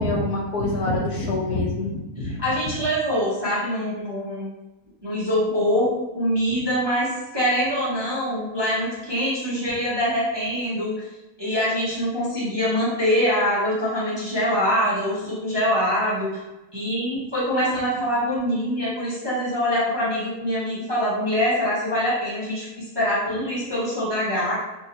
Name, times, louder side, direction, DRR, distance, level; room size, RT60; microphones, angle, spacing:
voice 1, 0.0-2.3, left 2 dB, 85° left, -1 dB, 1.3 m, -25 dB
voice 2, 2.1-4.5 5.0-10.9 11.4-16.4 16.7-22.6 22.9-24.5, equal, 25° right, -9 dB, 0.6 m, -24 dB
3.4 x 2.7 x 2.7 m, 1.0 s
omnidirectional pair, 1.7 m